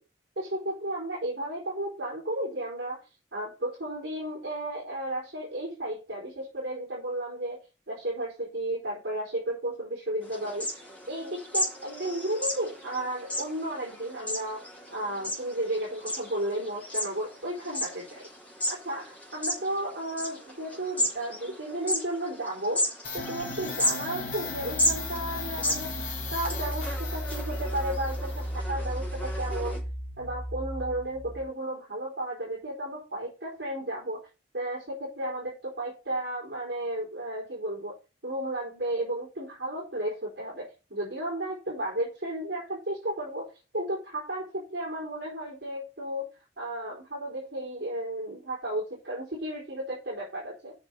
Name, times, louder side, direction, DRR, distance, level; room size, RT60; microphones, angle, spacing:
voice 1, 0.4-3.0 3.3-10.7 11.1-18.3 18.7-22.8 23.1-29.8 30.2-34.3 34.5-38.0 38.2-46.3 46.6-50.7, right 1 dB, 70° right, -4 dB, 4.0 m, -33 dB
sound 1, 10.2-29.8, left 1 dB, 10° left, 3.4 m, -34 dB
sound 2, 23.0-31.5, left 1 dB, 45° left, 2.3 m, -34 dB
7.1 x 6.2 x 6.7 m, 0.30 s
head